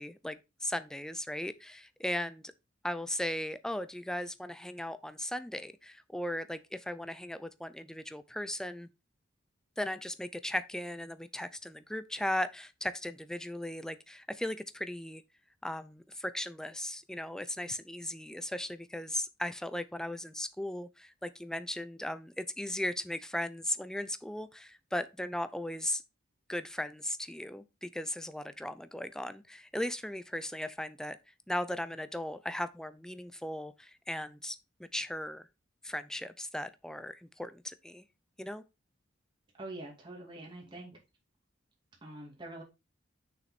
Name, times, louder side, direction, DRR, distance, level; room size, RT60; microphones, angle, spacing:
voice 1, 0.0-2.4 2.8-8.9 9.8-15.2 15.6-26.0 26.5-31.2 31.5-34.6 34.9-35.5 35.8-38.0 38.4-38.6, left 1 dB, 5° left, 0.5 m, -37 dB
voice 2, 39.6-41.0 42.0-42.6, right 2 dB, 25° right, 2.3 m, -45 dB
6.5 x 5.6 x 4.1 m
head